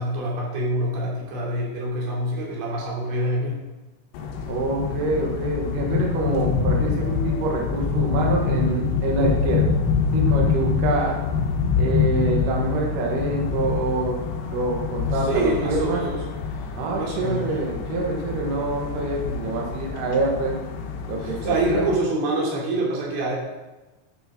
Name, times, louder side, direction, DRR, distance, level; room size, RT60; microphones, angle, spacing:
voice 1, 0.0-3.6 15.2-16.2 17.0-17.5 21.2-23.4, right 1 dB, 75° right, -4 dB, 5.4 m, -26 dB
sound 1, 4.1-22.0, left 5 dB, 85° left, 3.7 m, -25 dB
voice 2, 4.5-9.7 10.1-11.2 11.8-14.2 14.5-16.0 16.7-20.6 21.0-21.8, right 2 dB, 55° right, -1 dB, 2.6 m, -26 dB
11.0 x 6.9 x 6.1 m, 1.1 s
omnidirectional pair, 5.6 m